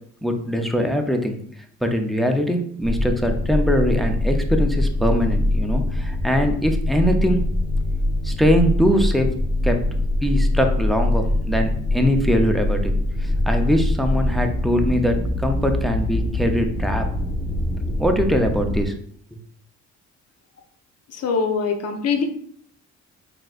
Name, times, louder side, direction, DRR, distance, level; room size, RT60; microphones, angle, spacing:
voice 1, 0.2-1.4 1.8-7.5 8.2-9.3 9.6-9.8 10.2-12.9 13.2-17.1 18.0-18.9 19.3-19.4, equal, ahead, 3 dB, 0.5 m, -22 dB
sound 1, 2.8-18.8, left 1 dB, 25° left, 1.1 m, -23 dB
voice 2, 21.1-22.2, left 5 dB, 55° left, 5 dB, 0.7 m, -23 dB
4.0 x 3.7 x 2.4 m, 0.63 s
cardioid pair, 90°, 30 cm